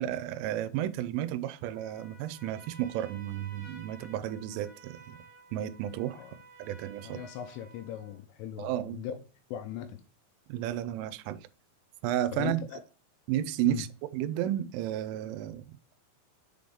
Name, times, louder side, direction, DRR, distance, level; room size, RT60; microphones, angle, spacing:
voice 1, 0.0-5.2 5.5-6.2 6.6-7.2 8.6-9.0 10.5-11.5 12.0-12.6 13.3-13.9 14.1-15.7, right 12 dB, 85° right, 3.1 m, -32 dB
Trumpet, 1.7-8.2, right 3 dB, 20° right, 1.6 m, -53 dB
voice 2, 7.0-9.2 9.5-10.0 12.3-12.8 13.6-13.8, left 10 dB, 80° left, 2.6 m, -38 dB
7.4 x 3.8 x 3.5 m
omnidirectional pair, 5.6 m